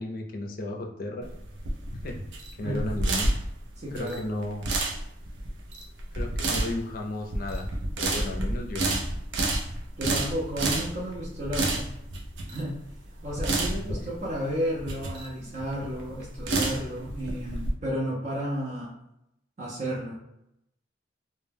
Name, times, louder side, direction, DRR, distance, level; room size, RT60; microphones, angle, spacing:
voice 1, 0.0-1.3 2.0-2.2 2.6-3.3 3.9-4.7 6.1-9.0 13.7-14.1 15.4-15.6, left 1 dB, 50° left, 2 dB, 0.4 m, -34 dB
sound 1, 1.2-17.7, right 2 dB, 85° right, 0.5 m, -30 dB
voice 2, 3.8-4.2 10.0-11.9 12.5-12.8 13.2-18.9 19.6-20.2, equal, 40° right, -5 dB, 0.5 m, -32 dB
2.1 x 2.1 x 3.3 m, 0.82 s
head